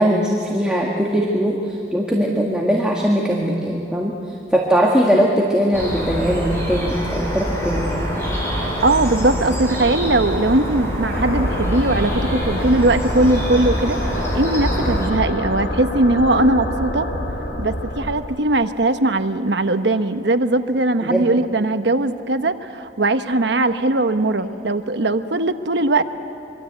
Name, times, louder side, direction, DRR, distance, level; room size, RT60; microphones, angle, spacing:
voice 1, 0.0-8.1 21.0-21.2, equal, 5° right, -2 dB, 1.7 m, -20 dB
sound 1, 5.7-15.1, equal, 15° left, 5.6 m, -25 dB
voice 2, 8.8-14.0 14.3-17.1 17.6-26.0, right 2 dB, 70° right, 9 dB, 1.1 m, -19 dB
sound 2, 11.1-18.2, left 1 dB, 85° left, 2.8 m, -27 dB
25.5 x 23.5 x 8.1 m, 2.8 s
head